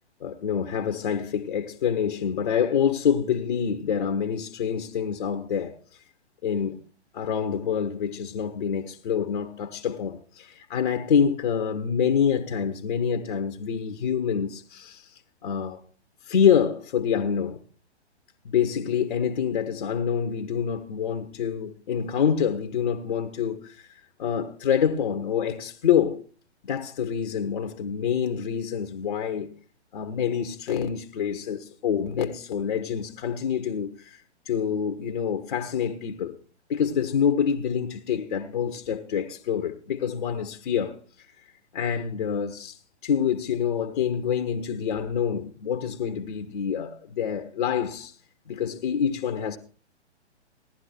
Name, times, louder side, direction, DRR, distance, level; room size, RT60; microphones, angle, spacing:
voice 1, 0.2-5.8 6.4-6.8 7.1-15.8 16.2-17.6 18.4-26.2 26.6-29.5 29.9-36.4 36.7-41.0 41.7-48.1 48.5-49.6, left 8 dB, 45° left, 1.2 m, -26 dB
17.0 x 11.5 x 4.4 m
figure-of-eight pair, 120°, 35 cm